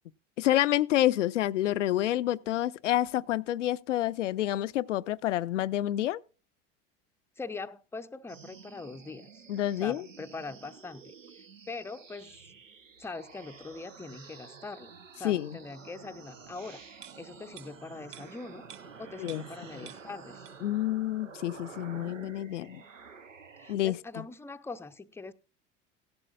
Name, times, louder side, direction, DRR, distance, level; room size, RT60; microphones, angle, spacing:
voice 1, 0.4-6.2 9.5-10.0 15.2-15.6 19.2-19.4 20.6-22.8 23.7-24.2, left 13 dB, 75° left, 0.5 m, -28 dB
voice 2, 7.4-9.4 9.8-12.4 13.0-18.6 19.0-20.4 23.6-25.3, left 3 dB, 5° left, 0.5 m, -42 dB
sound 1, 8.3-23.7, right 5 dB, 85° right, 0.8 m, -50 dB
sound 2, 17.0-19.6 19.9-20.8 21.1-21.3, right 10 dB, 55° right, 0.9 m, -52 dB
17.0 x 11.5 x 2.3 m
figure-of-eight pair, 70°, 37 cm